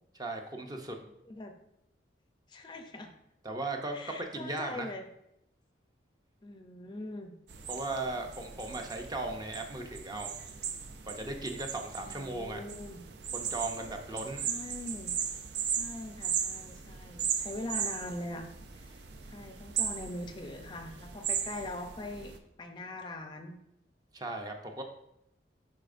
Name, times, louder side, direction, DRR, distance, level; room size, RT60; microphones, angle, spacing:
voice 1, 0.2-1.0 3.4-4.9 7.7-10.3 11.0-12.6 13.3-14.5 24.1-24.8, right 2 dB, 20° right, 3 dB, 0.5 m, -37 dB
voice 2, 2.5-3.1 3.9-5.1 6.4-7.3 12.0-13.0 14.4-15.1 15.6-18.4 18.7-23.6, left 1 dB, 25° left, 5 dB, 0.5 m, -42 dB
sound 1, 7.5-22.4, right 7 dB, 70° right, 0.5 m, -37 dB
9.9 x 4.2 x 2.5 m, 0.80 s
head